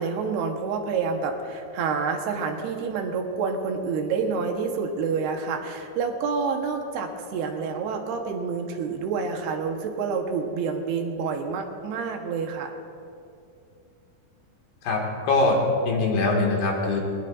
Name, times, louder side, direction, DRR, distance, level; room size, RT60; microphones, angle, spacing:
voice 1, 0.0-12.7, right 5 dB, 85° right, 3 dB, 3.2 m, -28 dB
voice 2, 14.8-15.6 15.9-17.0, left 3 dB, 80° left, -1 dB, 4.1 m, -22 dB
21.5 x 19.5 x 2.6 m, 2.6 s
omnidirectional pair, 4.5 m